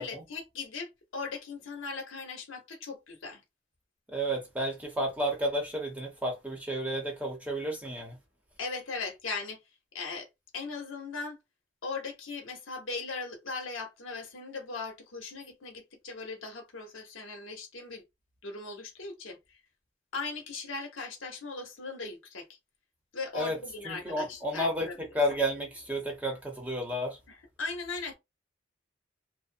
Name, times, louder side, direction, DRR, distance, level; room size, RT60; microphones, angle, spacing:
voice 1, 0.0-3.4 8.6-9.6 9.9-10.3 10.5-11.4 11.8-18.0 18.4-19.6 20.1-22.5 23.1-25.0 27.3-28.1, left 4 dB, 85° left, 0.9 m, -38 dB
voice 2, 4.1-8.1 23.3-23.6 23.8-27.2, equal, 10° right, 0.8 m, -31 dB
2.6 x 2.0 x 2.5 m
head